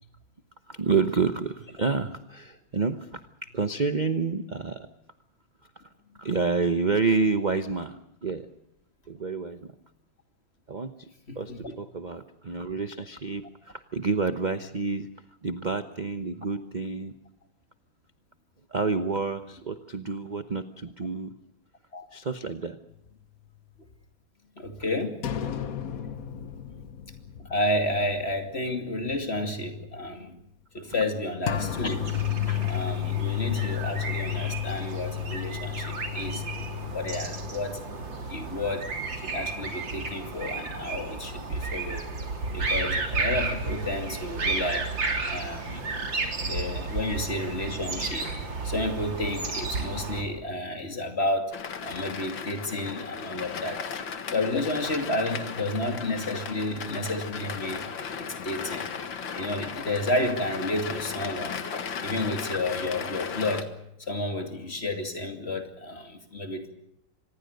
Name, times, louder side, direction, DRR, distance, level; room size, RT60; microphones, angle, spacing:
voice 1, 0.7-4.9 6.2-8.5 9.1-9.7 10.7-11.1 11.4-15.1 15.4-17.1 18.7-21.3 22.1-22.8, right 4 dB, 35° right, 10 dB, 0.8 m, -29 dB
voice 2, 11.3-11.7 21.9-22.1 24.6-25.2 26.2-26.3 26.7-26.8 27.5-30.4 30.7-36.4 36.9-37.8 38.3-38.9 39.2-42.0 42.5-44.9 45.3-45.8 46.4-48.3 48.6-53.8 54.3-57.8 58.1-58.9 59.3-63.7 64.0-66.7, left 1 dB, 35° left, 6 dB, 2.8 m, -31 dB
sound 1, 25.2-28.4 28.7-28.8 31.5-37.5, left 13 dB, 55° left, 1.5 m, -32 dB
sound 2, 31.5-50.2, right 3 dB, 80° right, 4.0 m, -33 dB
sound 3, 51.5-63.6, left 6 dB, 90° left, 2.3 m, -36 dB
25.5 x 20.5 x 6.6 m, 0.79 s
omnidirectional pair, 2.0 m